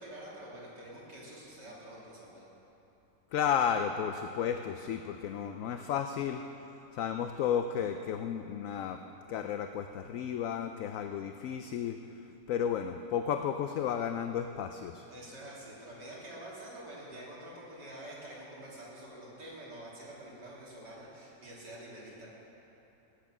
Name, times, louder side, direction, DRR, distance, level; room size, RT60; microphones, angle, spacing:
voice 1, 0.0-2.4 15.1-22.3, right 1 dB, 80° right, -6 dB, 3.5 m, -47 dB
voice 2, 3.3-6.4 6.9-12.0 12.5-15.0, left 8 dB, 70° left, 7 dB, 0.8 m, -33 dB
16.5 x 9.2 x 6.1 m, 3.0 s
omnidirectional pair, 1.8 m